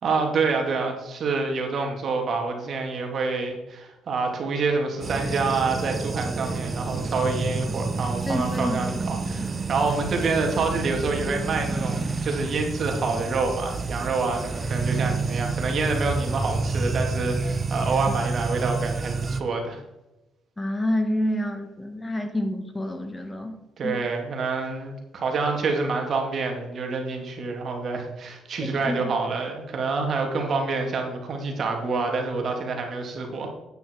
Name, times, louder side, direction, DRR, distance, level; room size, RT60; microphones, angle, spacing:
voice 1, 0.0-19.8 23.8-33.5, right 4 dB, 55° right, 3 dB, 2.6 m, -27 dB
sound 1, 5.0-19.4, right 3 dB, 35° right, 0.9 m, -29 dB
voice 2, 8.3-8.8 9.3-9.4 20.6-23.5 23.8-23.9 28.6-29.0, left 1 dB, 15° left, 6 dB, 1.5 m, -28 dB
9.5 x 9.1 x 4.7 m, 0.97 s
cardioid pair, 90°, 0 cm